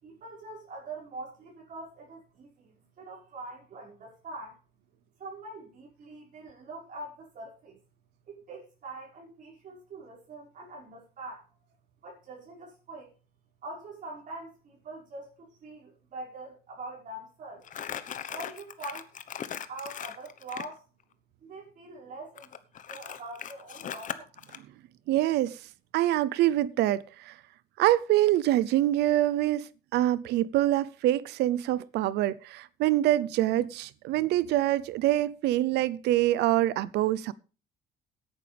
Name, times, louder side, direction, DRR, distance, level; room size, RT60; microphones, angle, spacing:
voice 1, 0.0-4.6 5.2-7.8 8.3-11.5 12.0-13.1 13.6-17.7 18.3-19.1 19.7-20.8 21.4-22.5 22.9-24.3, right 2 dB, 50° right, 5.7 m, -43 dB
Crumpling crinkling, 17.6-20.7 22.4-24.6, left 9 dB, 50° left, 1.1 m, -39 dB
voice 2, 25.1-25.6 25.9-27.3 27.8-37.3, right 14 dB, 80° right, 0.6 m, -25 dB
17.0 x 9.8 x 3.4 m
cardioid pair, 110°, 17 cm